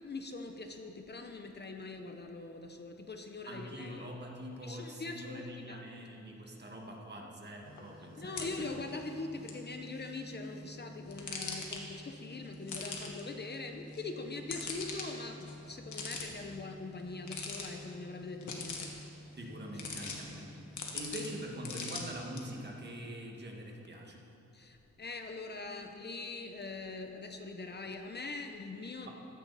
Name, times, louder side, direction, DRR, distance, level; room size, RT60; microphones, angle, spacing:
voice 1, 0.0-4.1 4.6-5.9 8.2-18.9 24.5-29.1, left 3 dB, 35° left, 5 dB, 0.9 m, -42 dB
voice 2, 3.4-8.7 19.4-20.5 20.9-24.2, equal, 35° right, 0 dB, 2.0 m, -44 dB
sound 1, 7.6-22.4, left 3 dB, 85° left, 1.9 m, -44 dB
15.5 x 13.5 x 4.2 m, 2.9 s
wide cardioid pair, 120°, 29 cm